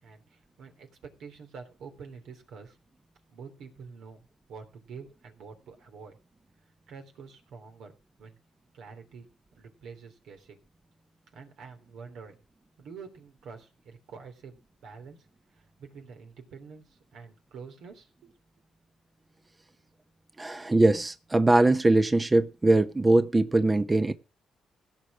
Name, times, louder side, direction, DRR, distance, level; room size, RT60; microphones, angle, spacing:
voice 1, 0.0-2.8 3.3-6.2 6.9-8.4 8.7-9.3 9.5-10.6 11.3-12.3 12.8-15.3 15.5-18.3, right 5 dB, 75° right, 3.3 m, -47 dB
voice 2, 20.4-24.1, right 2 dB, 20° right, 0.8 m, -22 dB
16.5 x 6.5 x 6.2 m
cardioid pair, 90°, 0 cm